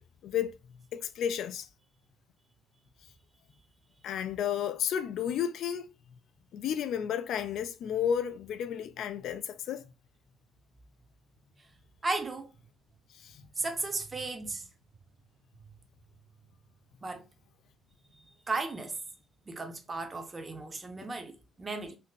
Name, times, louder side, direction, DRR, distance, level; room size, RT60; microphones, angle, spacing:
voice 1, 0.0-1.7 4.0-5.9 6.5-9.9 13.1-13.5, left 9 dB, 60° left, 0.3 m, -32 dB
voice 2, 12.0-12.5 13.6-14.7 17.0-17.2 18.1-19.0 19.5-22.0, right 3 dB, 30° right, 0.6 m, -35 dB
2.8 x 2.6 x 2.3 m
figure-of-eight pair, 45°, 0 cm